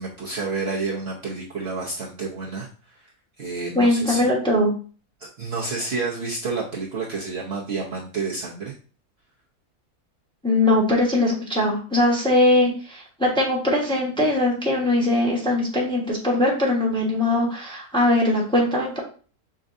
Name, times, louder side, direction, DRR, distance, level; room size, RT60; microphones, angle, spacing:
voice 1, 0.0-3.1 3.4-4.3 5.2-8.7, right 3 dB, 50° right, -4 dB, 0.9 m, -30 dB
voice 2, 3.7-4.7 10.4-19.0, left 1 dB, 5° left, -3 dB, 1.0 m, -21 dB
5.3 x 3.7 x 2.6 m, 0.39 s
omnidirectional pair, 1.6 m